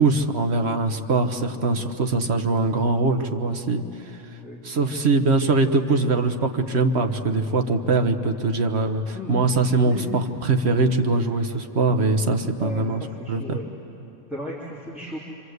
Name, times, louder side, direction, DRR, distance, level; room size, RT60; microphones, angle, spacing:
voice 1, 0.0-4.1 4.6-13.6, right 3 dB, 55° right, 6 dB, 1.4 m, -22 dB
voice 2, 4.4-5.0 9.1-9.4 9.8-10.1 12.6-13.6 14.3-15.2, left 1 dB, ahead, -7 dB, 2.9 m, -35 dB
26.0 x 25.5 x 8.1 m, 2.9 s
omnidirectional pair, 1.3 m